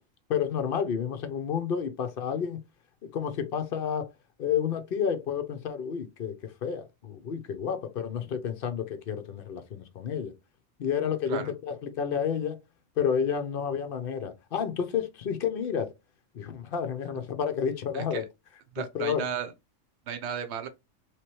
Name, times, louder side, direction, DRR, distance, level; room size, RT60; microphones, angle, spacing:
voice 1, 0.3-2.6 3.1-4.1 4.4-10.3 10.8-12.6 13.0-15.9 16.3-18.2 18.9-19.2, left 7 dB, 55° left, 0.7 m, -30 dB
voice 2, 17.9-18.2 18.7-19.5 20.1-20.7, right 8 dB, 60° right, 1.0 m, -34 dB
3.3 x 3.1 x 2.9 m
omnidirectional pair, 1.4 m